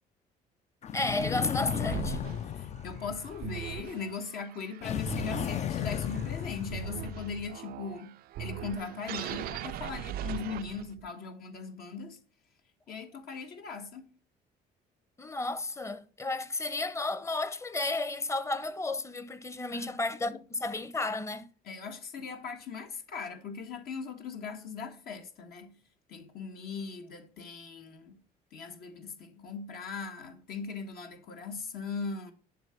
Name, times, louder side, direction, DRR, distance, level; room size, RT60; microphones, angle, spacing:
sound 1, 0.8-3.9 4.8-7.5, left 9 dB, 40° left, 0.5 m, -35 dB
voice 1, 0.9-2.2 15.2-21.4, left 2 dB, 15° left, 0.8 m, -32 dB
sound 2, 1.7-11.1, right 13 dB, 65° right, 0.4 m, -41 dB
voice 2, 2.5-12.2 12.9-14.1 19.7-20.0 21.6-25.8 26.1-28.2 28.5-32.3, left 5 dB, 65° left, 1.4 m, -39 dB
11.0 x 3.9 x 5.7 m
cardioid pair, 110°, 17 cm